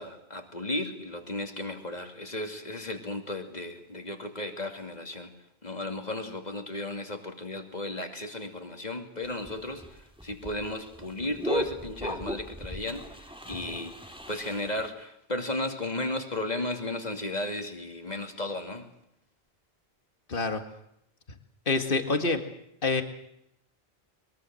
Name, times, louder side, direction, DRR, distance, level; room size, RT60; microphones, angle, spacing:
voice 1, 0.0-5.3 5.6-18.9, left 1 dB, 40° left, 5 dB, 2.9 m, -35 dB
sound 1, 9.2-14.9, equal, 5° right, 2.2 m, -37 dB
voice 2, 20.3-20.6 21.7-22.4 22.8-23.0, left 3 dB, 55° left, 7 dB, 2.2 m, -26 dB
23.5 x 22.0 x 7.7 m, 0.77 s
omnidirectional pair, 1.1 m